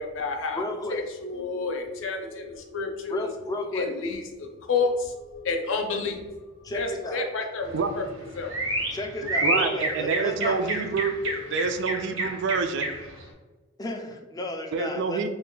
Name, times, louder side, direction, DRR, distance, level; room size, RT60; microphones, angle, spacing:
voice 1, 0.0-0.6 0.9-3.3 3.7-8.0 8.4-8.5, left 4 dB, 65° left, 3 dB, 0.5 m, -30 dB
voice 2, 0.5-1.0 3.1-3.9 6.6-7.3 8.9-10.8 13.8-15.3, left 1 dB, 20° left, 3 dB, 0.4 m, -33 dB
sound 1, 7.6-13.2, right 1 dB, 80° right, 0.9 m, -30 dB
voice 3, 9.4-11.1 11.5-12.9 14.7-15.3, right 5 dB, 60° right, 7 dB, 0.3 m, -27 dB
3.2 x 2.2 x 3.7 m, 1.2 s
head